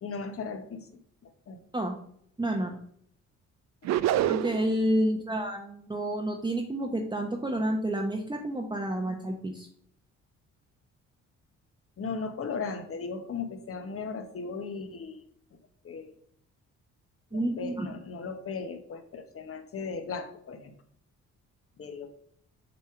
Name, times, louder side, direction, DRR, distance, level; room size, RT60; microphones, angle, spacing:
voice 1, 0.0-0.9 1.2-1.6 4.1-4.2 5.0-5.1 12.0-15.2 15.5-15.6 15.8-16.1 17.3-20.7 21.8-22.1, left 5 dB, 50° left, 7 dB, 1.2 m, -37 dB
voice 2, 2.4-2.8 4.3-9.7 17.3-17.9, right 1 dB, 15° right, 2 dB, 0.9 m, -29 dB
sound 1, 3.8-4.8, right 12 dB, 65° right, 0.4 m, -26 dB
7.5 x 3.5 x 4.8 m, 0.66 s
cardioid pair, 90°, 30 cm